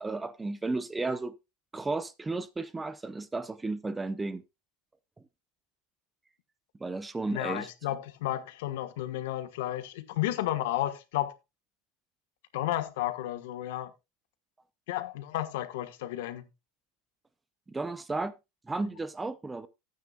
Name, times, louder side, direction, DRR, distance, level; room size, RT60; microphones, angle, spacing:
voice 1, 0.0-1.3 1.7-4.4 6.8-7.7 17.7-18.3 18.7-19.7, right 3 dB, 10° right, 0.4 m, -33 dB
voice 2, 7.3-11.3 12.5-13.9 14.9-16.4, left 14 dB, 75° left, 1.3 m, -32 dB
13.5 x 9.3 x 2.3 m
supercardioid pair, 165°, 0 cm